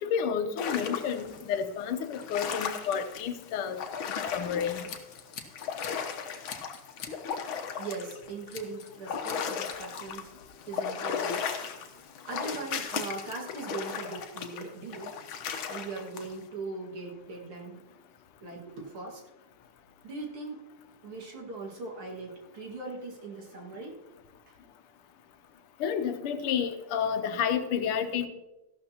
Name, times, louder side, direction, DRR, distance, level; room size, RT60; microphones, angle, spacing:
voice 1, 0.0-4.8 25.8-28.3, left 7 dB, 85° left, 9 dB, 1.8 m, -30 dB
sound 1, 0.6-1.4 2.0-5.0 5.3-10.3 10.6-16.3, left 7 dB, 70° left, 1.7 m, -36 dB
Scissors, 4.6-6.2 6.5-7.2 7.5-7.7 8.5-9.0 9.2-9.8, left 6 dB, 55° left, 1.3 m, -44 dB
voice 2, 7.8-10.3 10.7-11.5 12.2-15.1 15.7-17.8 18.4-19.2 20.0-20.6 21.0-24.0 24.5-24.6, right 3 dB, 80° right, -1 dB, 2.8 m, -40 dB
14.5 x 11.5 x 2.8 m, 1.0 s
omnidirectional pair, 2.4 m